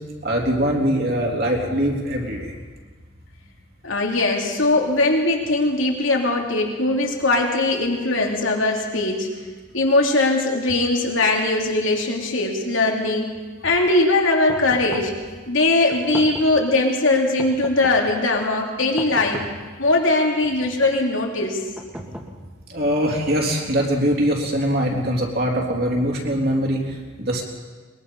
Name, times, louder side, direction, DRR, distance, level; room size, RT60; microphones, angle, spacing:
voice 1, 0.2-2.5 22.7-27.4, equal, 50° right, 0 dB, 3.8 m, -22 dB
voice 2, 3.8-9.3 9.7-13.4 13.6-15.1 15.5-19.4 19.8-21.6, left 2 dB, 75° left, 1 dB, 3.2 m, -20 dB
sound 1, 14.5-15.2 15.9-16.6 17.4-18.1 19.0-19.7 20.4-21.0 21.8-22.6, equal, 10° right, 2.0 m, -36 dB
22.0 x 22.0 x 5.6 m, 1.4 s
head